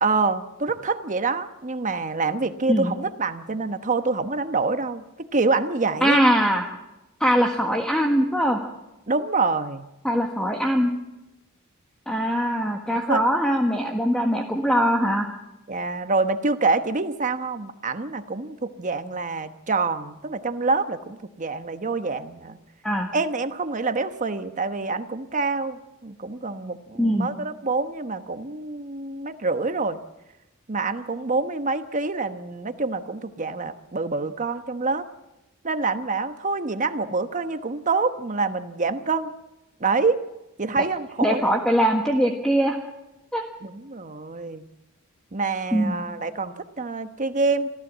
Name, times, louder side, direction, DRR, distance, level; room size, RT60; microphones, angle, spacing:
voice 1, 0.0-5.0 5.3-6.2 9.1-9.9 12.9-13.2 15.7-22.6 23.1-30.0 30.7-35.1 35.6-39.3 39.8-40.2 40.6-41.6 43.6-44.7 45.3-47.7, right 3 dB, 35° right, 9 dB, 1.2 m, -26 dB
voice 2, 6.0-6.7 7.2-8.6 10.0-10.9 12.1-15.3 22.8-23.1 27.0-27.3 41.2-42.8 43.3-43.4 45.7-46.0, equal, 5° left, 2 dB, 1.5 m, -21 dB
27.0 x 14.5 x 7.5 m, 0.95 s
head